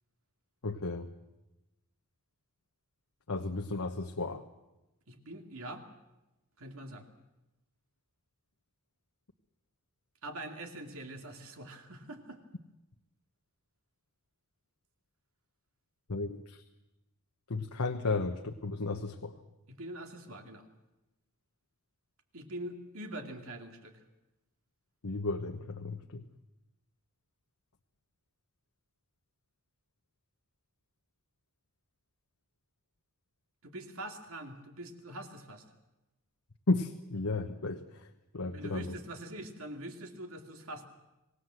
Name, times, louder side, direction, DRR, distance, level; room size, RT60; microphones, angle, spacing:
voice 1, 0.6-1.1 3.3-4.4 16.1-16.6 17.5-19.3 25.0-26.2 36.7-37.8 38.3-38.9, left 3 dB, 75° left, 4 dB, 1.1 m, -33 dB
voice 2, 5.1-5.8 6.6-7.1 10.2-12.4 19.7-20.7 22.3-24.0 33.6-35.6 38.5-40.9, right 1 dB, 70° right, 5 dB, 2.5 m, -44 dB
25.5 x 18.0 x 7.7 m, 0.96 s
head